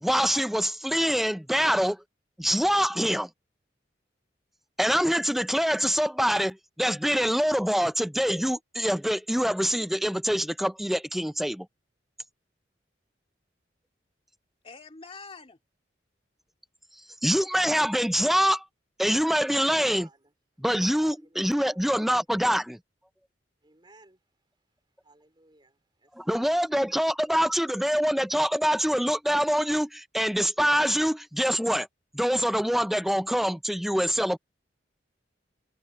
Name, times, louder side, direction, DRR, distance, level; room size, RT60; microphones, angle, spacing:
voice 1, 0.0-2.0 2.4-3.3 4.8-11.7 17.2-18.6 19.0-20.1 20.6-22.8 26.2-31.9 32.1-34.4, equal, ahead, 0.5 m, -25 dB
voice 2, 14.6-15.6 26.4-27.0, left 4 dB, 30° left, 2.5 m, -46 dB
voice 3, 19.5-20.3 21.0-21.8 23.6-26.6, right 3 dB, 25° right, 3.9 m, -57 dB
head